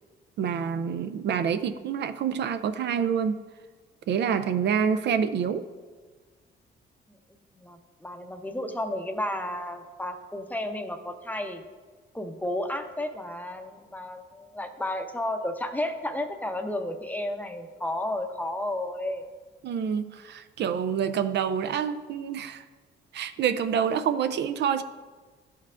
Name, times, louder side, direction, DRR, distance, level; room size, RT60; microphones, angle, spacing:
voice 1, 0.4-3.4 4.1-5.7 19.6-22.7 23.1-24.8, right 7 dB, 60° right, 10 dB, 0.4 m, -27 dB
voice 2, 7.1-11.6 12.1-19.3, left 1 dB, 10° left, 6 dB, 0.6 m, -32 dB
12.0 x 4.5 x 2.4 m, 1.4 s
cardioid pair, 90°, 20 cm